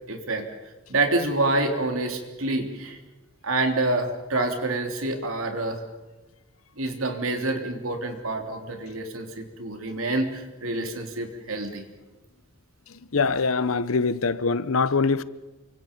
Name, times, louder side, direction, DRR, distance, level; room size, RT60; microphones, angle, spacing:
voice 1, 0.1-0.5 0.9-3.0 3.4-5.8 6.8-11.9, right 2 dB, 85° right, 3.3 m, -27 dB
voice 2, 13.1-15.2, left 4 dB, 85° left, 0.9 m, -23 dB
28.5 x 25.0 x 5.4 m
head